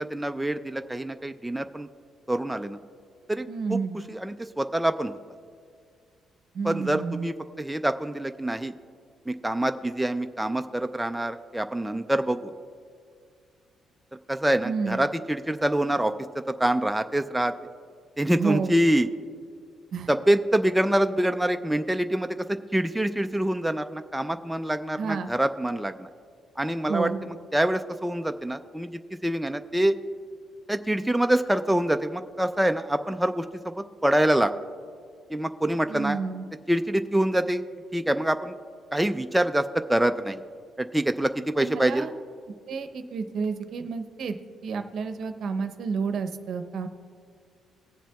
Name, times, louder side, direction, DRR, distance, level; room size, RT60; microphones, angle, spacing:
voice 1, 0.0-1.9 2.3-2.8 3.3-3.8 4.1-5.2 6.6-8.7 9.3-12.5 14.3-17.5 18.2-19.1 20.1-26.1 26.6-30.0 30.7-34.5 35.3-36.2 36.7-37.6 37.9-38.6 38.9-40.4 40.8-42.1, right 1 dB, 5° right, 7 dB, 0.3 m, -26 dB
voice 2, 3.5-4.0 6.5-7.3 14.6-15.0 18.4-18.7 19.9-20.1 25.0-25.3 26.9-27.2 35.9-36.5 41.6-42.1 42.7-44.4 44.6-46.9, right 5 dB, 65° right, 8 dB, 0.7 m, -30 dB
21.5 x 7.4 x 2.3 m, 2.1 s
cardioid pair, 90°, 0 cm